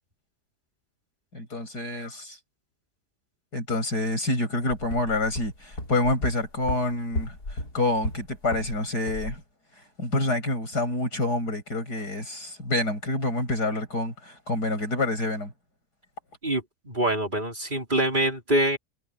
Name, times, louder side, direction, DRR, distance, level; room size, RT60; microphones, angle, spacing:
voice 1, 1.3-2.4 3.5-9.4 10.0-15.5, left 2 dB, 90° left, 8.6 m, -27 dB
sound 1, 4.7-8.8 9.1-9.4, left 1 dB, 75° left, 6.1 m, -34 dB
voice 2, 16.4-18.8, right 1 dB, 30° right, 4.8 m, -25 dB
omnidirectional pair, 1.7 m